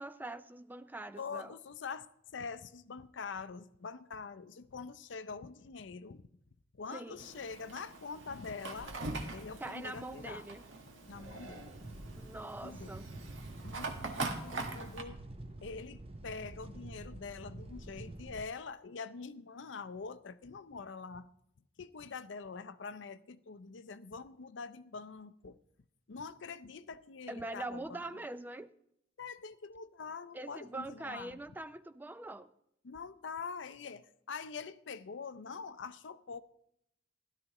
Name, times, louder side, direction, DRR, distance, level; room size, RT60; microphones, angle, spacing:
voice 1, 0.0-1.5 6.9-7.3 9.6-10.6 12.2-13.0 27.3-28.7 30.3-32.5, right 2 dB, 10° right, 0.4 m, -43 dB
voice 2, 1.2-2.1 2.3-6.3 6.7-9.0 9.3-10.5 11.1-11.7 12.6-12.9 13.6-15.2 15.6-21.3 21.8-25.6 26.1-28.1 29.2-31.4 32.8-36.4, left 5 dB, 70° left, 0.5 m, -44 dB
Fire, 7.2-15.0, right 3 dB, 80° right, 1.7 m, -43 dB
sound 1, 11.1-18.4, right 1 dB, 30° right, 0.8 m, -48 dB
16.0 x 12.5 x 3.0 m
head